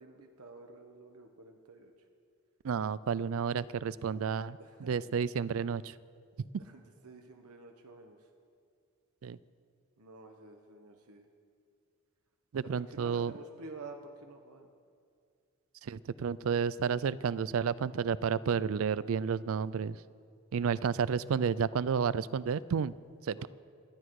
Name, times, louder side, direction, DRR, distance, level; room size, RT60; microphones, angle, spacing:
voice 1, 0.0-1.9 4.6-4.9 6.6-8.3 10.0-11.3 12.7-14.7 22.5-22.6 23.4-23.5, right 3 dB, 85° right, 4 dB, 1.1 m, -50 dB
voice 2, 2.6-5.9 6.4-6.5 9.2-9.4 12.5-13.3 15.8-20.0 20.5-22.9 23.2-23.5, right 6 dB, 70° right, 19 dB, 0.4 m, -31 dB
27.0 x 10.0 x 4.8 m, 2.3 s
head